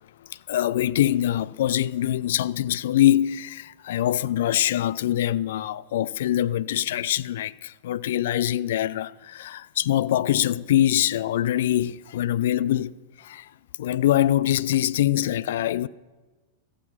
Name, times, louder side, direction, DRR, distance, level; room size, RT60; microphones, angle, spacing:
voice 1, 0.3-12.9 13.2-13.5 13.8-15.9, left 12 dB, 60° left, 0.4 m, -24 dB
14.5 x 7.4 x 6.0 m
figure-of-eight pair, 90°, 0 cm